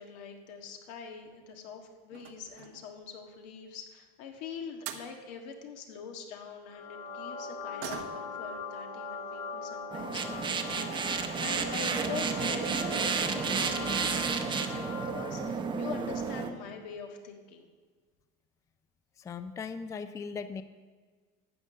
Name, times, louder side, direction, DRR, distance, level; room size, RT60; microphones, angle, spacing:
voice 1, 0.0-13.9 14.4-17.7, left 6 dB, 85° left, 3 dB, 1.6 m, -44 dB
sound 1, 1.1-1.5 2.1-2.9 4.5-4.6 4.8-5.1 7.8-8.4 8.8-8.9 9.3-9.5 10.3-10.4 10.7-10.8 11.2-11.5 11.8-11.9 12.2-12.3, right 9 dB, 90° right, 1.1 m, -44 dB
sound 2, 6.7-15.5, left 4 dB, 60° left, 1.8 m, -41 dB
sound 3, 9.9-16.5, right 5 dB, 20° right, 0.8 m, -31 dB
voice 2, 19.2-20.6, left 5 dB, 15° left, 10 dB, 0.4 m, -38 dB
12.0 x 5.2 x 8.5 m, 1.5 s
cardioid pair, 150°, 21 cm